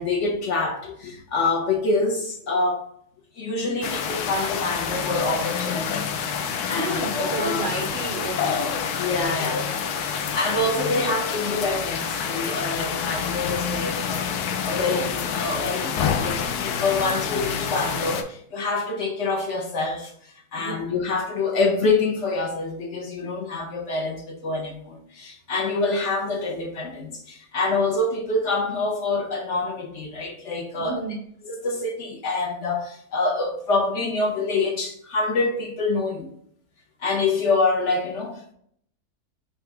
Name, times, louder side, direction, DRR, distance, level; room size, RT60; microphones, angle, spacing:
voice 1, 0.0-2.9 3.4-6.1 6.4-7.6 9.0-14.3 14.6-31.0 31.4-36.3 37.0-38.5, left 3 dB, 55° left, 1.1 m, -26 dB
sound 1, 3.8-18.2, left 7 dB, 85° left, 1.1 m, -27 dB
voice 2, 6.7-8.8 20.6-20.8 30.8-31.2, right 3 dB, 60° right, 0.6 m, -31 dB
5.1 x 2.9 x 3.4 m
omnidirectional pair, 1.6 m